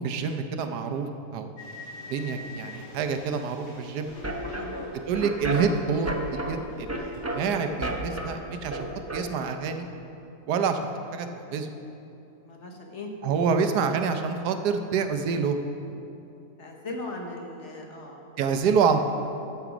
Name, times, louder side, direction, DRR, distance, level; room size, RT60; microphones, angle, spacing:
voice 1, 0.0-1.5 2.1-4.1 5.1-7.0 7.3-9.9 10.5-10.8 11.1-11.7 13.2-15.6 18.4-19.0, right 6 dB, 80° right, 7 dB, 1.3 m, -27 dB
sound 1, 1.6-5.5 5.8-7.6, left 3 dB, 85° left, 2.4 m, -46 dB
sound 2, 4.1-9.2, right 1 dB, 15° right, 0.5 m, -33 dB
voice 2, 4.3-5.0 12.4-13.1 16.6-18.7, left 2 dB, 50° left, 1 dB, 1.3 m, -39 dB
14.0 x 7.1 x 4.9 m, 2.8 s
omnidirectional pair, 1.7 m